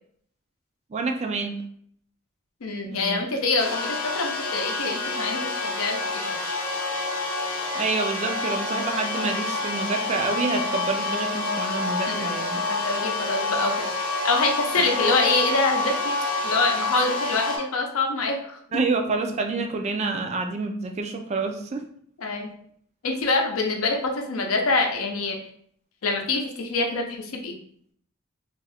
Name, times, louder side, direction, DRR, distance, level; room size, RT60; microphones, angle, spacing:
voice 1, 0.9-1.6 2.8-3.2 7.7-12.7 18.7-21.8, right 3 dB, 30° right, 4 dB, 0.3 m, -28 dB
voice 2, 2.6-6.3 12.1-12.4 12.7-13.7 14.2-16.2 16.4-18.6 22.2-22.5 23.0-25.4 26.0-27.6, left 3 dB, 80° left, 2 dB, 0.6 m, -25 dB
sound 1, 3.6-17.6, left 2 dB, 45° left, 0.7 m, -28 dB
2.6 x 2.4 x 3.3 m, 0.64 s
head